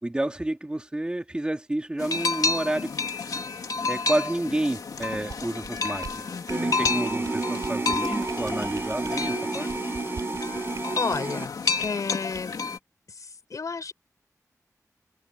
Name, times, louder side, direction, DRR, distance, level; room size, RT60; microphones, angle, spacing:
voice 1, 0.0-2.9 3.9-6.3 6.6-9.7, right 1 dB, 15° right, 2.2 m, -29 dB
sound 1, 2.0-12.8, left 4 dB, 80° left, 2.5 m, -31 dB
sound 2, 5.0-11.3 11.8-12.0 12.3-12.5, right 5 dB, 70° right, 7.6 m, -43 dB
voice 2, 6.3-6.9 11.0-12.6 13.2-13.9, left 5 dB, 65° left, 5.0 m, -32 dB
sound 3, 6.5-11.5, right 3 dB, 40° right, 5.7 m, -30 dB
wide cardioid pair, 135°, 6 cm